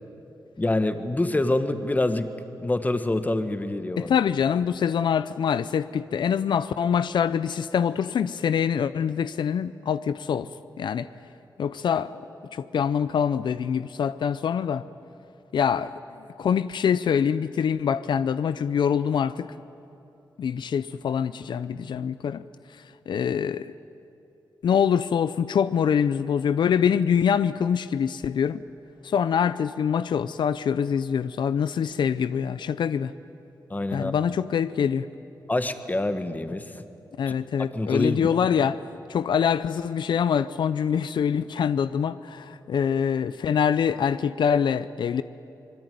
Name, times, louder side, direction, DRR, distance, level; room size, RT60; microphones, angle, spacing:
voice 1, 0.6-2.3 2.6-4.1 33.7-34.1 35.5-36.8 37.3-37.4 37.7-38.4, left 2 dB, 20° left, 1.5 m, -26 dB
voice 2, 4.0-10.5 10.8-11.1 11.6-12.2 12.5-14.8 15.5-15.9 16.4-19.5 20.4-22.4 23.1-23.7 24.6-28.6 29.0-33.1 33.9-35.1 37.2-38.8 39.1-45.2, left 7 dB, 85° left, 0.6 m, -24 dB
25.0 x 22.0 x 9.4 m
wide cardioid pair, 95°, 8 cm